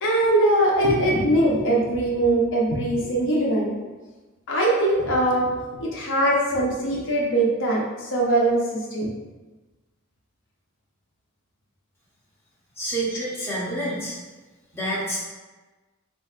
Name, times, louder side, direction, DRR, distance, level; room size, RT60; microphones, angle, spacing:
voice 1, 0.0-3.8 4.5-5.5 5.8-9.1, right 1 dB, 60° left, -3 dB, 0.7 m, -21 dB
voice 2, 12.8-14.2 14.7-15.2, right 1 dB, 10° left, -7 dB, 0.7 m, -28 dB
4.3 x 2.6 x 2.4 m, 1.2 s
head